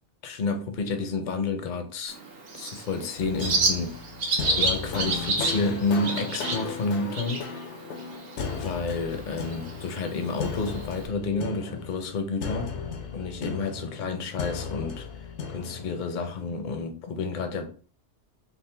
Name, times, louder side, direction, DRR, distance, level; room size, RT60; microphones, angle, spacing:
voice 1, 0.2-2.2 2.5-3.9 4.5-7.5 8.5-12.8 13.1-15.3 15.5-17.7, left 3 dB, 50° left, 0.6 m, -30 dB
Bird, 2.1-11.1, right 3 dB, 60° right, 0.8 m, -31 dB
sound 1, 3.2-16.1, left 5 dB, 75° left, 0.9 m, -36 dB
3.6 x 2.5 x 3.2 m
omnidirectional pair, 1.2 m